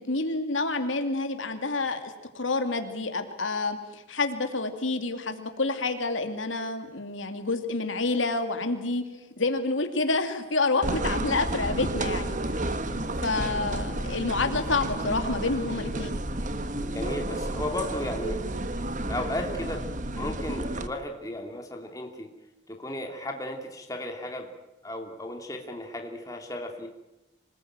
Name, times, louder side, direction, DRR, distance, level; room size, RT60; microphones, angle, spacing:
voice 1, 0.0-9.0 9.4-12.6 13.2-16.2, left 3 dB, 85° left, 6 dB, 2.7 m, -28 dB
sound 1, 10.8-20.9, right 1 dB, 40° right, 1.4 m, -31 dB
voice 2, 16.9-18.4 19.1-22.3 22.7-24.5 24.8-26.9, left 1 dB, 15° left, 2 dB, 2.9 m, -35 dB
26.5 x 20.0 x 9.0 m, 0.99 s
head